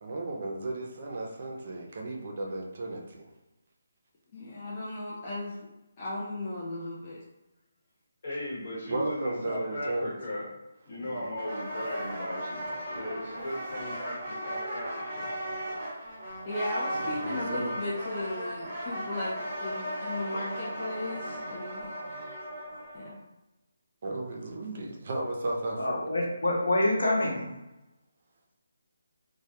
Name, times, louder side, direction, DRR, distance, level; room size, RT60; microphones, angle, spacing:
voice 1, 0.0-3.3 8.9-10.1 10.9-11.3 17.0-17.7 24.0-26.0, right 2 dB, 40° right, 0 dB, 0.4 m, -34 dB
voice 2, 4.3-5.7 6.0-7.2 16.5-22.0 22.9-23.2, left 2 dB, 25° left, -7 dB, 0.4 m, -36 dB
voice 3, 8.2-10.5 10.8-15.3, left 1 dB, 45° left, -6 dB, 1.2 m, -37 dB
sound 1, 11.4-23.1, equal, 20° right, 0.8 m, -36 dB
voice 4, 25.8-27.5, left 1 dB, 85° left, -2 dB, 0.7 m, -26 dB
2.1 x 2.1 x 2.8 m, 0.99 s
hypercardioid pair, 170°, 0 cm